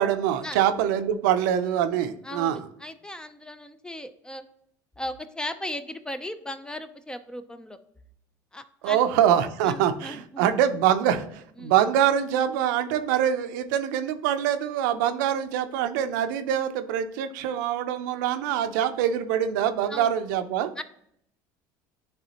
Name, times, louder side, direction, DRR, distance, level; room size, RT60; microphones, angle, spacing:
voice 1, 0.0-2.7 8.8-20.7, right 10 dB, 80° right, 9 dB, 0.5 m, -24 dB
voice 2, 2.2-4.4 5.0-7.8 8.5-9.0 9.6-10.5 11.6-11.7 19.9-20.1 20.8-20.9, left 1 dB, 10° left, 11 dB, 0.5 m, -37 dB
9.8 x 3.4 x 2.9 m, 0.72 s
supercardioid pair, 90°, 10 cm